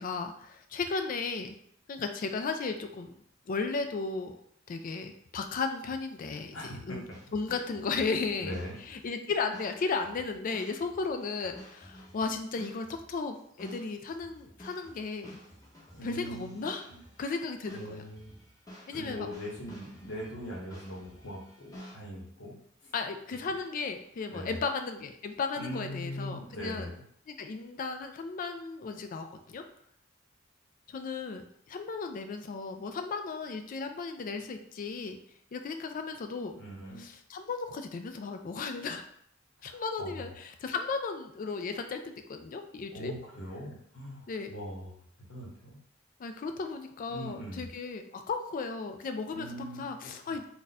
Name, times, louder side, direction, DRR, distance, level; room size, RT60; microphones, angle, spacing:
voice 1, 0.0-1.5 1.9-3.1 3.5-4.4 4.7-7.1 7.3-8.6 8.9-15.4 16.0-16.9 17.2-18.0 18.9-19.3 22.9-26.9 27.3-29.6 30.9-35.2 35.5-36.5 37.0-39.0 39.6-43.1 44.3-44.5 46.2-50.4, left 4 dB, 45° left, 7 dB, 0.3 m, -35 dB
voice 2, 6.5-7.0 8.4-8.8 15.9-16.6 16.9-17.0 17.7-18.4 18.7-22.5 22.8-22.9 24.3-24.6 25.6-26.9 36.6-37.0 39.6-40.3 42.9-45.8 47.1-47.7 49.3-50.0 50.3-50.4, equal, 65° left, -2 dB, 1.0 m, -41 dB
sound 1, 6.6-21.9, equal, 20° left, 0.8 m, -52 dB
2.5 x 2.2 x 4.0 m, 0.68 s
head